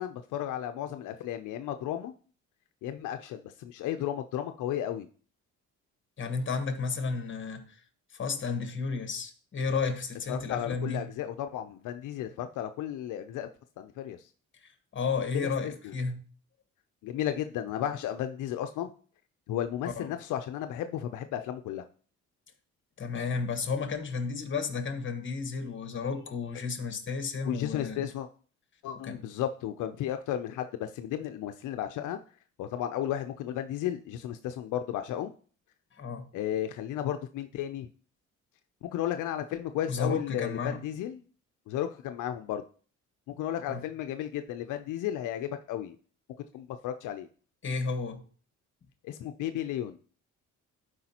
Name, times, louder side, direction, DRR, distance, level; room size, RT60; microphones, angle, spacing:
voice 1, 0.0-2.1 2.8-5.1 10.3-13.5 13.8-14.3 15.3-15.9 17.0-18.9 19.5-21.8 27.5-28.3 28.8-32.2 32.6-35.3 36.3-37.9 38.8-41.2 41.7-42.6 43.4-46.0 46.5-47.3 49.0-50.0, left 11 dB, 80° left, 0.5 m, -34 dB
voice 2, 6.2-7.7 8.1-11.1 14.9-16.2 20.0-20.1 23.0-28.1 29.0-29.2 36.0-36.2 39.9-40.8 43.7-43.8 47.6-48.2, left 4 dB, 40° left, 1.3 m, -32 dB
11.5 x 4.9 x 2.9 m
cardioid pair, 90°, 30 cm